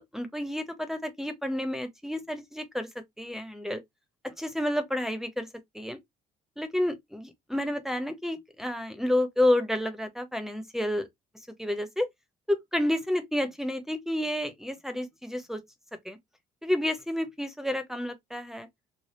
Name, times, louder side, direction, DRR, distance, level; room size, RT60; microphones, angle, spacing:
voice 1, 0.0-3.8 4.2-5.5 5.7-6.0 6.6-11.1 11.6-12.1 12.5-15.6 16.0-16.2 16.6-18.7, left 1 dB, ahead, 0.7 m, -30 dB
3.3 x 2.1 x 4.1 m
cardioid pair, 110°, 17 cm